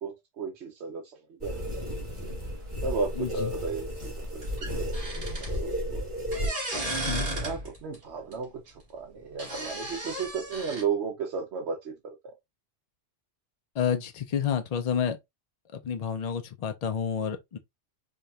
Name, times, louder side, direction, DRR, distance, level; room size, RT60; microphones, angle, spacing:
voice 1, 0.0-2.3 2.8-4.4 4.8-6.1 6.4-6.5 7.3-12.3, right 5 dB, 75° right, 1.0 m, -35 dB
sound 1, 1.4-6.5, equal, 25° right, 1.9 m, -33 dB
voice 2, 3.2-3.5 7.1-7.3 13.8-15.2 15.7-17.6, left 8 dB, 60° left, 0.4 m, -29 dB
sound 2, 4.4-5.6 6.3-7.9 8.3-8.4 9.4-10.8, right 1 dB, 45° right, 1.9 m, -34 dB
4.9 x 2.3 x 2.7 m
omnidirectional pair, 1.2 m